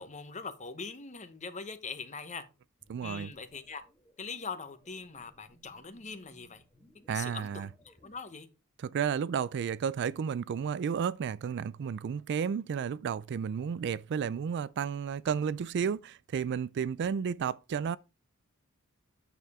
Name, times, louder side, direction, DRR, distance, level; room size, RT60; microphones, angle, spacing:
voice 1, 0.0-2.4 3.0-3.8 4.2-6.6 7.1-8.5, left 4 dB, 35° left, 1.0 m, -42 dB
sound 1, 2.8-8.2, equal, 15° left, 1.5 m, -64 dB
voice 2, 2.9-3.3 7.1-7.7 8.8-18.0, right 7 dB, 55° right, 0.3 m, -32 dB
9.1 x 6.8 x 3.6 m
head